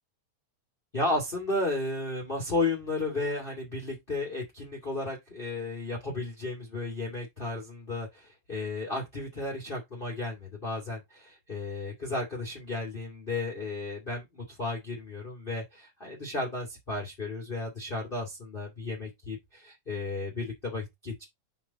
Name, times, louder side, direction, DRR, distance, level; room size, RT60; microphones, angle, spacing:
voice 1, 0.9-21.2, left 2 dB, 20° left, 2.1 m, -33 dB
6.5 x 5.8 x 4.0 m
omnidirectional pair, 3.5 m